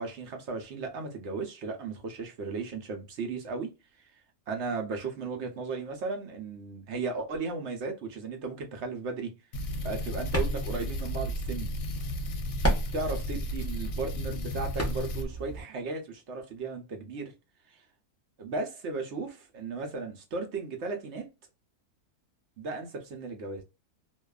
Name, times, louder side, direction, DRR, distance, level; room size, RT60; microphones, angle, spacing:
voice 1, 0.0-3.7 4.0-4.1 4.5-9.3 9.8-11.7 12.9-17.3 17.7-17.8 18.4-21.3 22.6-23.6, right 4 dB, 60° right, 0.8 m, -35 dB
sound 1, 9.5-15.3, equal, 70° left, 0.9 m, -34 dB
sound 2, 9.7-15.6, right 1 dB, 20° left, 0.4 m, -35 dB
2.6 x 2.3 x 2.3 m
omnidirectional pair, 1.7 m